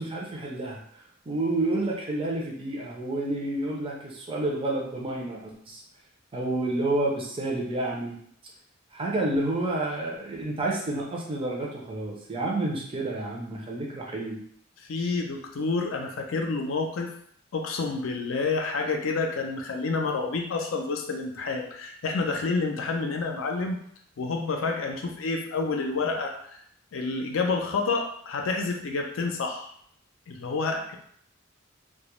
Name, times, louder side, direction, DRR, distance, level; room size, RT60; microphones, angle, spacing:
voice 1, 0.0-5.8 6.3-8.2 8.9-14.4 15.0-15.1, right 2 dB, 25° right, -2 dB, 0.5 m, -30 dB
voice 2, 14.9-17.1 17.5-23.8 24.2-26.6 26.9-29.7 30.3-31.0, left 4 dB, 80° left, 3 dB, 0.4 m, -29 dB
2.2 x 2.0 x 2.9 m, 0.66 s
head